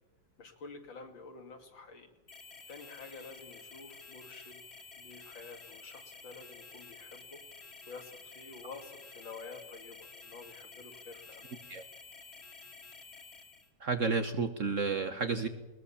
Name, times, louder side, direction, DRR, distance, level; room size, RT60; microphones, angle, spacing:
voice 1, 0.4-2.1 2.7-4.6 5.0-7.4 7.9-11.5, left 4 dB, 70° left, 5 dB, 3.0 m, -49 dB
sound 1, 2.3-13.7, left 4 dB, 30° left, 2.5 m, -51 dB
voice 2, 13.8-15.5, right 4 dB, 50° right, 9 dB, 1.1 m, -31 dB
20.5 x 20.5 x 7.1 m, 1.1 s
omnidirectional pair, 2.2 m